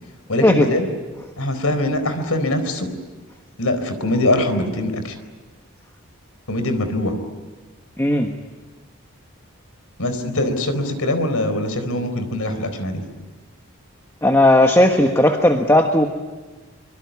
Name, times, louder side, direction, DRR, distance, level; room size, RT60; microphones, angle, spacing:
voice 1, 0.3-0.9 1.4-2.9 3.6-5.2 6.5-7.1 10.0-13.0, left 1 dB, 85° left, 9 dB, 4.2 m, -22 dB
voice 2, 8.0-8.3 14.2-16.1, left 1 dB, 10° left, 5 dB, 1.3 m, -15 dB
24.5 x 23.5 x 9.6 m, 1.3 s
head